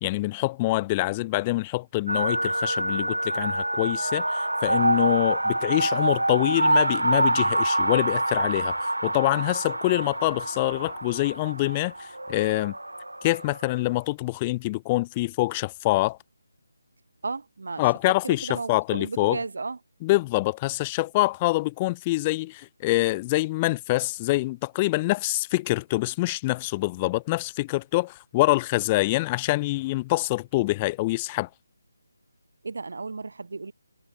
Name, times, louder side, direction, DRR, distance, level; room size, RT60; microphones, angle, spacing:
voice 1, 0.0-12.7 13.2-16.2 17.8-19.4 20.0-31.5, left 20 dB, 20° left, 0.5 m, -25 dB
sound 1, 2.1-13.7, right 1 dB, 75° right, 0.4 m, -26 dB
voice 2, 17.2-17.8 18.2-19.8 32.6-33.7, right 3 dB, 55° right, 1.0 m, -34 dB
figure-of-eight pair, 150°, 0 cm